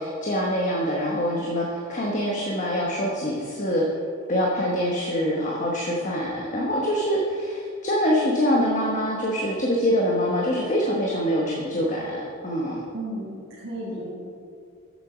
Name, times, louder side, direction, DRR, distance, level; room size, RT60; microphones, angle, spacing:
voice 1, 0.0-3.8 4.3-12.8, equal, 35° left, -2 dB, 1.0 m, -25 dB
voice 2, 12.9-14.1, right 1 dB, 60° right, -7 dB, 1.8 m, -34 dB
7.5 x 7.3 x 6.1 m, 2.3 s
head